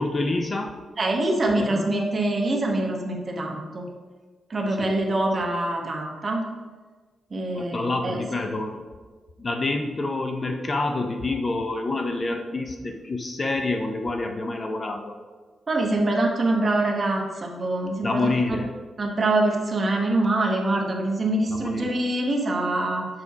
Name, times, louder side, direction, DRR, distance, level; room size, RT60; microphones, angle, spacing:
voice 1, 0.0-0.8 1.4-1.9 4.8-4.9 7.6-8.8 9.4-15.1 18.0-18.7 21.6-21.9, left 2 dB, 30° left, 5 dB, 0.6 m, -27 dB
voice 2, 1.0-3.9 4.5-6.4 7.3-8.2 15.7-18.6 19.0-23.1, right 2 dB, 35° right, 1 dB, 1.1 m, -24 dB
6.6 x 4.2 x 4.7 m, 1.4 s
wide cardioid pair, 135°, 0 cm